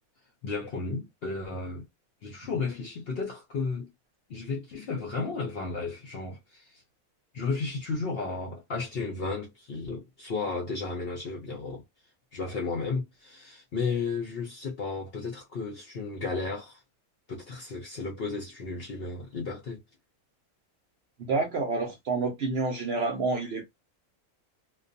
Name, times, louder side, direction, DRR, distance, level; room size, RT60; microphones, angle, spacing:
voice 1, 0.4-1.8 2.2-3.9 4.3-6.8 7.3-11.8 12.3-16.8 17.3-19.8, left 4 dB, 60° left, 0.6 m, -33 dB
voice 2, 21.3-23.7, right 3 dB, 60° right, 0.6 m, -28 dB
2.4 x 2.2 x 2.5 m
omnidirectional pair, 1.6 m